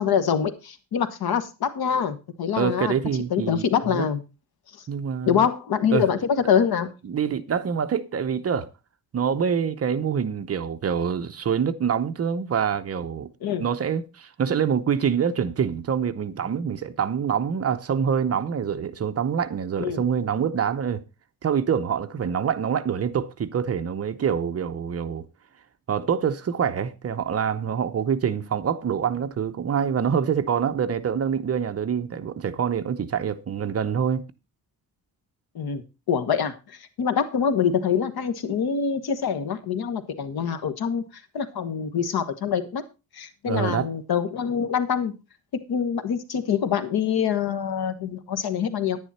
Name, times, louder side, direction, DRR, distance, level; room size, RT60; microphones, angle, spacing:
voice 1, 0.0-2.9 3.3-4.2 5.2-6.9 13.4-13.6 19.8-20.0 35.5-35.8 36.1-42.8 43.1-45.2 45.7-49.0, left 7 dB, 75° left, 1.5 m, -25 dB
voice 2, 2.6-4.1 4.9-5.5 5.9-6.1 7.0-8.7 9.1-13.3 13.6-21.0 21.4-25.2 25.9-34.3 43.5-43.9, right 7 dB, 40° right, 0.8 m, -25 dB
10.5 x 10.0 x 4.3 m
wide cardioid pair, 170°, 37 cm